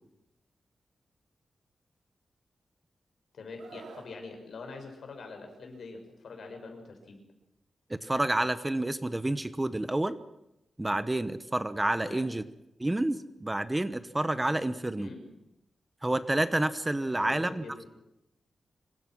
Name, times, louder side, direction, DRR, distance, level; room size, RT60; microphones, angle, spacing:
voice 1, 3.3-7.2 12.0-12.3 15.0-15.2 17.2-17.9, left 3 dB, 70° left, 4 dB, 6.2 m, -44 dB
Screaming, 3.6-4.1 5.6-5.8, right 5 dB, 85° right, 3.5 m, -49 dB
voice 2, 7.9-10.2 10.8-12.4 12.8-15.1 16.0-17.6, right 1 dB, 15° right, 12 dB, 1.0 m, -29 dB
26.0 x 23.5 x 6.3 m, 0.86 s
wide cardioid pair, 130°, 0 cm